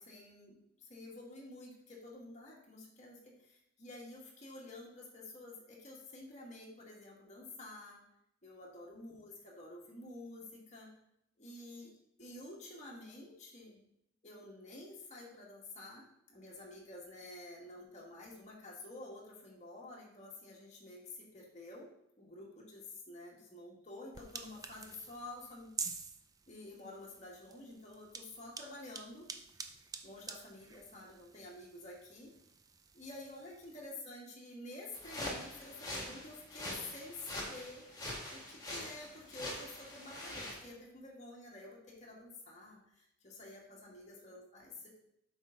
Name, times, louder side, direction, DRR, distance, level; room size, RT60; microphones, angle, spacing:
voice 1, 0.0-8.0 8.4-10.9 11.4-11.9 12.2-13.8 14.2-21.9 22.2-25.7 26.5-29.3 30.0-32.3 32.9-37.9 38.1-44.9, left 2 dB, 35° left, -3 dB, 2.0 m, -50 dB
sound 1, 24.1-33.9, right 5 dB, 20° right, 0.5 m, -48 dB
sound 2, 34.9-40.6, left 1 dB, 20° left, 1.6 m, -44 dB
8.0 x 5.8 x 3.9 m, 0.77 s
head